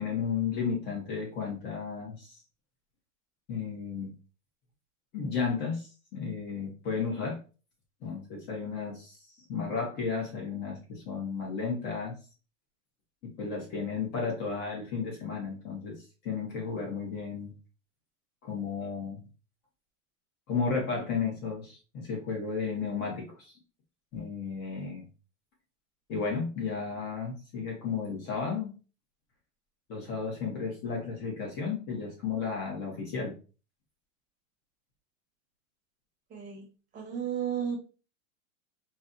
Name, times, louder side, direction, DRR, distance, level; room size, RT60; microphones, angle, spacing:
voice 1, 0.0-2.4 3.5-4.1 5.1-7.4 8.0-9.2 9.5-12.2 13.2-17.5 18.4-19.2 20.5-23.5 24.1-25.0 26.1-28.7 29.9-33.4, left 5 dB, 25° left, 0 dB, 0.7 m, -33 dB
voice 2, 36.3-36.7 36.9-37.8, right 8 dB, 20° right, 0 dB, 0.8 m, -33 dB
4.0 x 2.0 x 2.5 m, 0.34 s
supercardioid pair, 150°, 41 cm